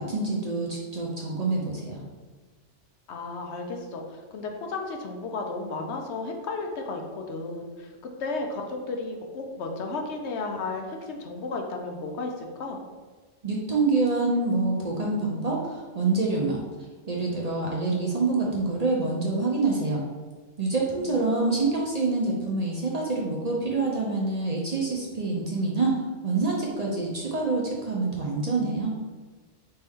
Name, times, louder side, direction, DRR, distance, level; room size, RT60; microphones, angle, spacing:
voice 1, 0.0-2.0 13.4-16.6 17.1-20.1 20.6-25.9 26.2-28.9, right 3 dB, 45° right, -3 dB, 0.6 m, -26 dB
voice 2, 3.1-12.8 21.0-21.4, left 3 dB, 70° left, 2 dB, 0.9 m, -34 dB
4.2 x 3.4 x 3.5 m, 1.3 s
omnidirectional pair, 1.2 m